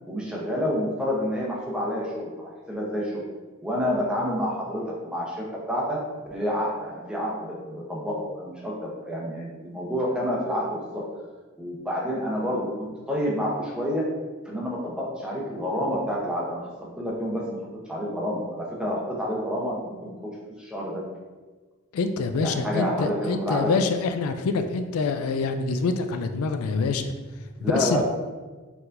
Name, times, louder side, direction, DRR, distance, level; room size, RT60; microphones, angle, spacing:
voice 1, 0.1-3.2 3.6-6.0 6.3-11.0 11.6-14.1 14.4-17.6 17.9-20.1 20.5-21.0 22.4-23.7 27.6-28.0, equal, 5° right, -4 dB, 0.8 m, -29 dB
voice 2, 21.9-27.2 27.6-28.0, left 4 dB, 80° left, 7 dB, 0.3 m, -26 dB
4.5 x 3.9 x 2.6 m, 1.3 s
head